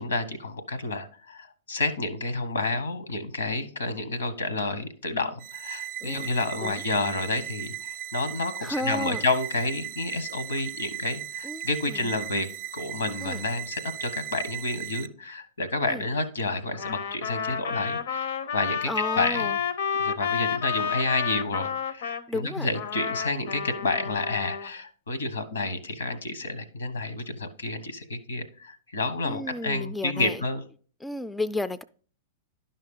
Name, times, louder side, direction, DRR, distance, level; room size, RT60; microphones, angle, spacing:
voice 1, 0.0-12.5 12.7-18.9 19.2-19.5 20.0-30.6, left 3 dB, 80° left, 1.0 m, -30 dB
sound 1, 5.4-15.1, right 12 dB, 50° right, 0.5 m, -38 dB
voice 2, 8.6-9.2 11.4-12.0 13.2-13.4 15.9-16.0 18.9-19.6 22.3-22.7 29.2-30.4 31.0-31.8, left 1 dB, 5° left, 0.3 m, -32 dB
Trumpet, 16.7-22.2 22.7-24.7, left 7 dB, 65° left, 0.6 m, -30 dB
11.0 x 5.7 x 3.6 m
hypercardioid pair, 105°, 0 cm